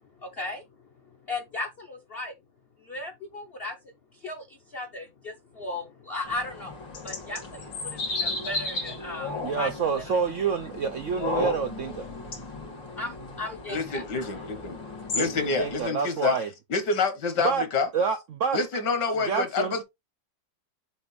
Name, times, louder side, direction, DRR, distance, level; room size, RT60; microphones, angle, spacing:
voice 1, 0.2-0.7 1.1-2.3 2.8-3.8 4.1-6.8 7.0-9.7 10.1-10.5 12.9-14.5, left 2 dB, 50° left, 0.7 m, -36 dB
sound 1, 6.3-15.8, left 3 dB, 85° left, 2.8 m, -35 dB
voice 2, 9.4-12.1 15.2-16.5 17.4-17.6 17.9-18.6 19.3-19.8, right 6 dB, 80° right, 0.6 m, -28 dB
voice 3, 13.7-14.8 15.1-16.4 16.7-17.9 18.5-19.8, left 4 dB, 70° left, 1.9 m, -27 dB
6.9 x 2.5 x 5.5 m
omnidirectional pair, 2.0 m